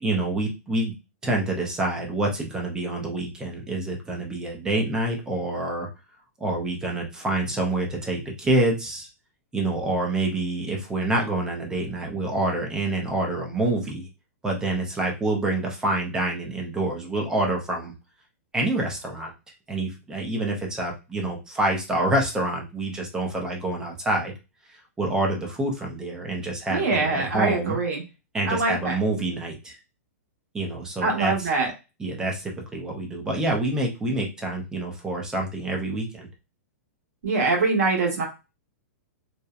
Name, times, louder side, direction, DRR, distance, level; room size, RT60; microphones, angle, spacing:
voice 1, 0.0-0.9 1.2-5.9 6.4-9.1 9.5-14.1 14.4-17.9 18.5-19.3 19.7-24.3 25.0-27.8 28.3-29.8 30.5-31.5 32.0-36.3, right 2 dB, 10° right, 0 dB, 0.4 m, -27 dB
voice 2, 26.7-28.0 28.4-28.9 31.0-31.7 37.2-38.3, right 3 dB, 75° right, 0 dB, 1.2 m, -23 dB
2.7 x 2.0 x 2.3 m, 0.28 s
hypercardioid pair, 160°, 9 cm